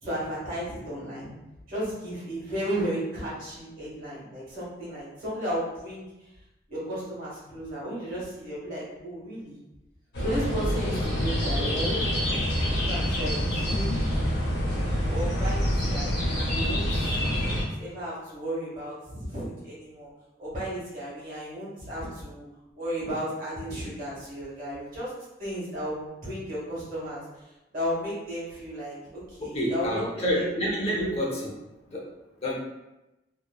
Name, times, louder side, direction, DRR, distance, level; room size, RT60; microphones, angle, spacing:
voice 1, 0.0-1.4 1.7-6.0 6.7-9.6 10.2-13.4 13.7-14.1 15.1-20.1 20.4-22.4 22.8-25.1 25.4-27.2 27.7-30.5 30.9-31.0 31.4-31.5, equal, 50° right, -8 dB, 1.2 m, -34 dB
sound 1, 10.1-17.6, equal, 65° left, 0.8 m, -26 dB
voice 2, 29.4-31.6 31.9-32.1 32.4-32.5, equal, 35° left, -3 dB, 0.5 m, -28 dB
2.9 x 2.0 x 2.2 m, 0.97 s
head